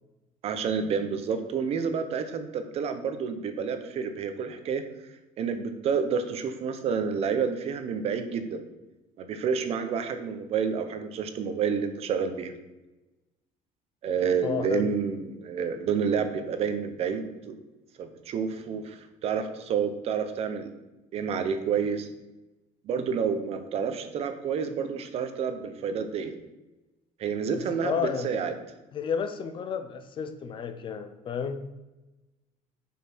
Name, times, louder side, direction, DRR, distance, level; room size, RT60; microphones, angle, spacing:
voice 1, 0.4-4.8 5.4-8.6 9.2-12.5 14.0-17.5 18.0-20.7 21.1-22.1 22.8-26.3 27.2-27.9 28.2-28.5, right 6 dB, 45° right, 8 dB, 0.9 m, -29 dB
voice 2, 14.4-14.9 27.5-28.3 28.9-31.6, left 6 dB, 35° left, 9 dB, 0.7 m, -31 dB
7.9 x 5.6 x 6.1 m, 1.0 s
cardioid pair, 160°, 14 cm